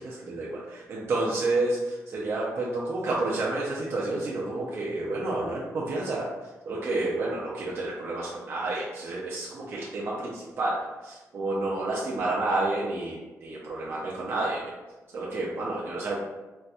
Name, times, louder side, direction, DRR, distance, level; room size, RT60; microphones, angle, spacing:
voice 1, 0.0-6.3 6.6-14.6 15.1-16.2, right 2 dB, 45° right, -5 dB, 0.5 m, -30 dB
4.1 x 2.5 x 2.2 m, 1.2 s
wide cardioid pair, 170°, 6 cm